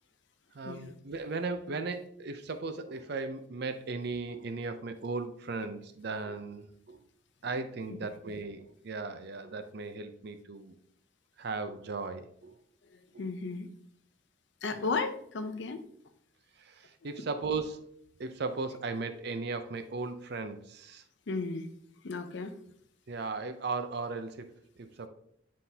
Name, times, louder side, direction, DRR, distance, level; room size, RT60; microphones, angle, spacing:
voice 1, 0.5-7.0 7.4-10.7 11.4-12.5 13.1-13.3 14.7-15.0 16.6-21.0 23.1-24.5 24.8-25.1, right 3 dB, 55° right, 9 dB, 0.5 m, -37 dB
voice 2, 13.2-13.7 14.6-15.8 21.3-21.7 22.0-22.5, left 3 dB, 65° left, 9 dB, 0.6 m, -34 dB
9.9 x 3.7 x 2.7 m, 0.67 s
head